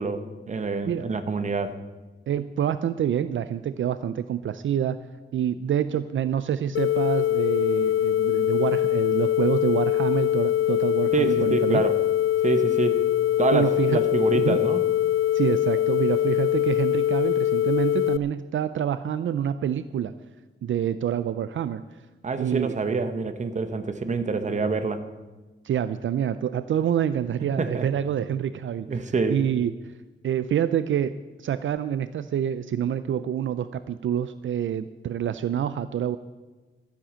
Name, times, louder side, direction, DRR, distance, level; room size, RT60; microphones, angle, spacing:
voice 1, 0.0-1.8 11.1-11.9 12.4-13.0 13.4-14.8 22.2-25.0 27.6-27.9 28.9-29.4, right 4 dB, 35° right, 9 dB, 1.0 m, -26 dB
voice 2, 2.3-5.1 5.3-11.8 13.5-14.0 14.3-14.6 15.3-20.1 20.6-21.8 22.4-22.7 25.6-29.9 30.2-36.2, right 9 dB, 65° right, 13 dB, 0.5 m, -27 dB
sound 1, 6.7-18.2, left 12 dB, 80° left, 0.5 m, -23 dB
13.0 x 10.0 x 7.4 m, 1.2 s
wide cardioid pair, 165°, 21 cm